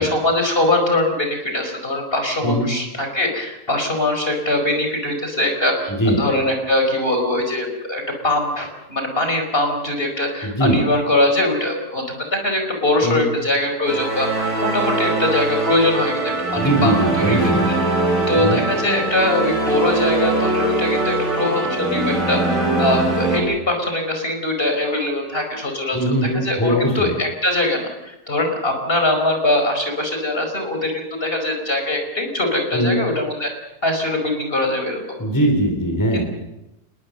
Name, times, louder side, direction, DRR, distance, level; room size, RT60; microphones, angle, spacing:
voice 1, 0.0-14.3 14.6-16.9 17.3-17.4 18.3-22.4 22.8-33.5 33.8-35.0 36.1-36.2, left 1 dB, 35° left, 4 dB, 5.2 m, -22 dB
voice 2, 5.9-6.2 10.4-10.8 13.0-13.3 16.6-17.6 18.4-18.6 25.9-27.1 32.7-33.0 35.2-36.2, right 1 dB, 10° left, 3 dB, 4.5 m, -20 dB
sound 1, 13.9-23.4, right 2 dB, 55° right, 8.3 m, -22 dB
28.5 x 21.0 x 6.7 m, 0.89 s
omnidirectional pair, 1.7 m